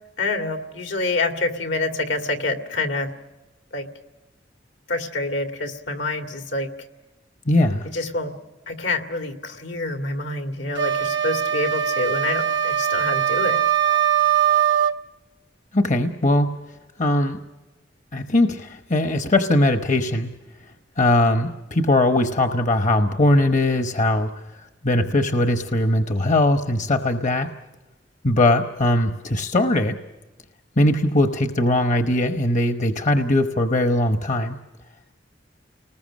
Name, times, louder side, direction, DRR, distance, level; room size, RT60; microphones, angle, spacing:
voice 1, 0.2-3.1 3.7-3.9 4.9-6.7 7.9-8.3 8.7-13.6, left 2 dB, 80° left, 4 dB, 2.3 m, -27 dB
voice 2, 7.5-7.9 15.7-16.5 17.0-17.4 18.1-20.3 21.0-24.3 24.8-27.5 28.2-30.0 30.8-34.6, left 1 dB, 45° left, 7 dB, 1.0 m, -20 dB
sound 1, 10.8-15.0, right 9 dB, 70° right, 0.9 m, -21 dB
29.5 x 20.0 x 6.4 m, 1.1 s
head